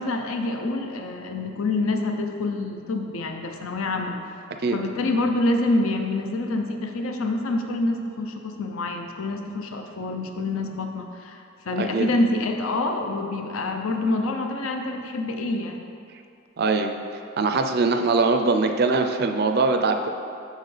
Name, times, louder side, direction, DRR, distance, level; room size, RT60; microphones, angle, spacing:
voice 1, 0.0-4.1 4.7-15.8, left 2 dB, 80° left, 4 dB, 0.6 m, -26 dB
voice 2, 11.8-12.1 16.6-16.9 17.4-20.1, right 3 dB, 50° right, 6 dB, 0.4 m, -22 dB
6.6 x 6.5 x 3.3 m, 2.6 s
head